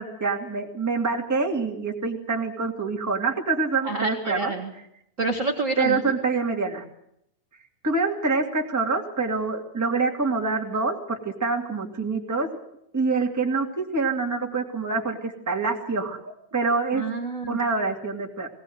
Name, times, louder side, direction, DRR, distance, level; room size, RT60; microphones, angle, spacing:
voice 1, 0.0-4.5 5.8-6.8 7.8-12.5 12.9-17.0 17.5-18.5, right 4 dB, 5° right, 1 dB, 1.8 m, -26 dB
voice 2, 3.8-4.7 5.2-6.1 16.9-17.6, right 3 dB, 35° right, 3 dB, 1.4 m, -28 dB
19.5 x 18.5 x 7.8 m, 0.75 s
omnidirectional pair, 3.8 m